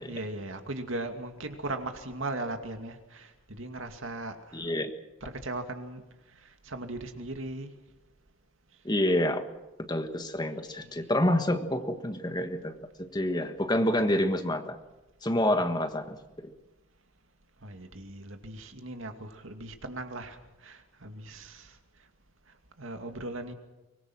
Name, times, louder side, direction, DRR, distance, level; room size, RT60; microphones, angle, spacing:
voice 1, 0.0-4.7 5.2-6.0 6.3-7.7 10.8-11.1 17.6-21.8 22.5-23.5, right 2 dB, 75° right, 6 dB, 2.4 m, -38 dB
voice 2, 4.5-4.9 8.8-9.5 9.8-14.8 15.2-16.5, left 1 dB, 20° left, 7 dB, 1.5 m, -28 dB
24.0 x 20.0 x 6.3 m, 1.0 s
head